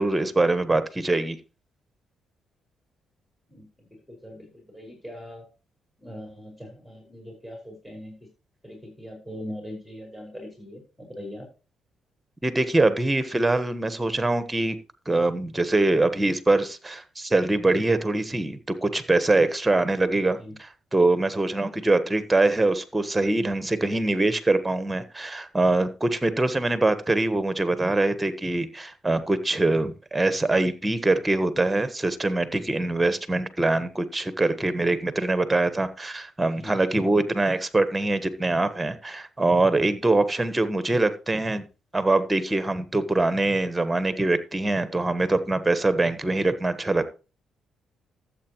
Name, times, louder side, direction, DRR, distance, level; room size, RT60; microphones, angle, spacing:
voice 1, 0.0-1.4 12.4-14.8 15.1-41.7 41.9-47.1, right 2 dB, 15° right, 1.3 m, -23 dB
voice 2, 3.5-5.4 6.0-8.2 8.6-11.5 20.4-20.6 36.5-36.8, left 1 dB, 5° left, 5.2 m, -41 dB
13.0 x 7.9 x 3.0 m
cardioid pair, 90°, 0 cm